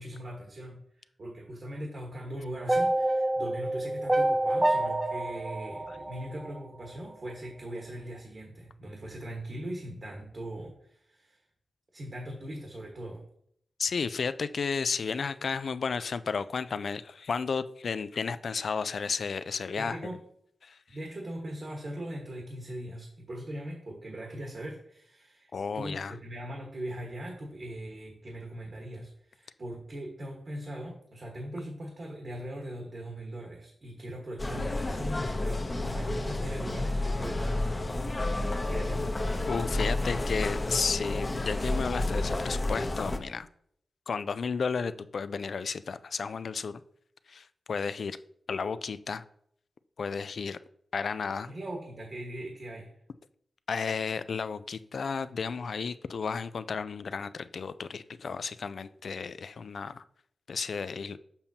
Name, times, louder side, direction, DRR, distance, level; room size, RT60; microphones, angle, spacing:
voice 1, 0.0-11.4 11.9-13.2 19.8-20.2 20.9-38.0 38.3-39.1 51.4-52.9, right 1 dB, 60° right, 1.5 m, -40 dB
sound 1, 2.7-6.9, right 1 dB, 20° right, 0.5 m, -28 dB
voice 2, 13.8-20.0 20.6-20.8 25.5-26.1 39.5-43.5 44.1-46.8 47.3-48.2 48.5-49.2 50.0-50.6 50.9-51.5 53.7-60.0 60.5-61.2, left 5 dB, 70° left, 0.3 m, -33 dB
sound 2, 34.4-43.2, left 2 dB, 35° left, 0.8 m, -30 dB
7.0 x 5.6 x 2.8 m
cardioid pair, 45°, 0 cm